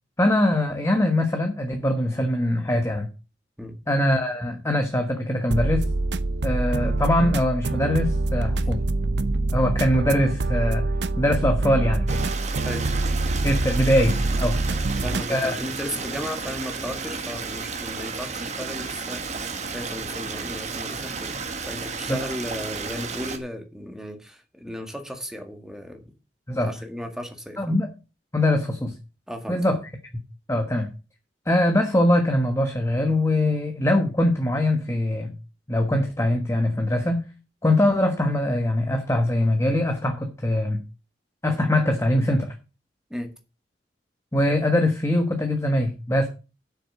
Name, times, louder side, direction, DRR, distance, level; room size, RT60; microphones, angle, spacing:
voice 1, 0.2-3.1 3.9-5.8 6.4-8.8 9.5-10.8 11.2-12.2 13.4-14.6 15.3-15.6 26.5-26.7 27.6-27.9 28.3-28.9 29.5-29.8 30.5-30.9 31.5-35.3 35.7-37.2 37.6-40.8 41.4-42.5 44.3-46.3, left 1 dB, 15° left, 5 dB, 1.3 m, -22 dB
sound 1, 5.5-15.3, right 2 dB, 80° right, 0.7 m, -25 dB
Stream, 12.1-23.4, right 4 dB, 45° right, 1.5 m, -33 dB
voice 2, 14.7-21.4 21.7-26.0 26.5-27.7 29.3-29.6 43.1-43.3, equal, 5° right, 4 dB, 1.8 m, -35 dB
7.6 x 6.5 x 7.6 m, 0.32 s
head